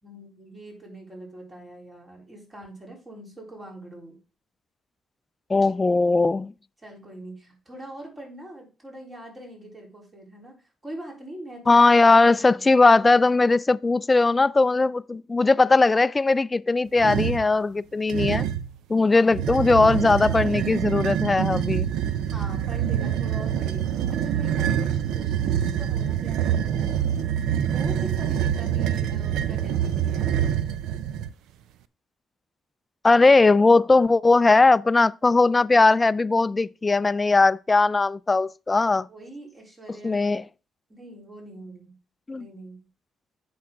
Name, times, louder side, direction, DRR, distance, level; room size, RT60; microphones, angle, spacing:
voice 1, 0.0-4.2 6.8-10.6 10.8-12.6 19.1-19.5 22.3-27.0 27.6-30.4 39.1-40.4 40.9-41.9 42.3-42.9, right 1 dB, 25° right, 3.8 m, -43 dB
voice 2, 5.5-6.5 11.7-18.4 18.9-21.9 33.0-39.1 40.0-40.4 42.3-42.5, left 3 dB, 25° left, 0.4 m, -19 dB
sound 1, 17.0-17.5 18.1-18.7 19.3-31.3, right 9 dB, 85° right, 0.5 m, -26 dB
8.3 x 6.4 x 3.8 m
cardioid pair, 90°, 0 cm